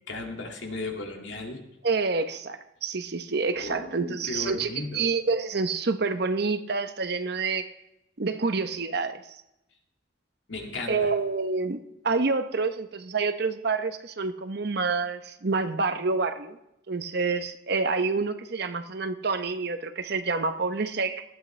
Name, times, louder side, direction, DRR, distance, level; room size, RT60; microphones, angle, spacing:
voice 1, 0.1-1.7 3.5-5.1 10.5-11.1, left 2 dB, 70° left, 2 dB, 2.2 m, -35 dB
voice 2, 1.8-7.7 8.2-9.2 10.9-16.6 16.9-21.2, right 4 dB, 55° right, 9 dB, 0.8 m, -28 dB
19.0 x 13.0 x 3.3 m, 0.86 s
head